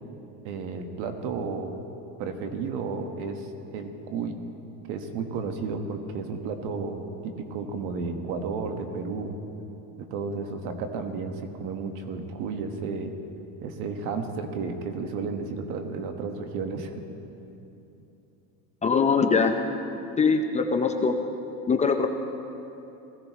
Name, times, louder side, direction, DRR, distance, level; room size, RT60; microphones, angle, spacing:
voice 1, 0.4-1.8 2.2-4.4 4.9-9.4 10.0-13.1 13.6-16.9, right 4 dB, 70° right, 5 dB, 1.5 m, -32 dB
voice 2, 18.8-19.5 20.2-21.2 21.7-22.1, left 5 dB, 15° left, 5 dB, 0.5 m, -22 dB
20.0 x 15.5 x 3.1 m, 3.0 s
supercardioid pair, 135°, 41 cm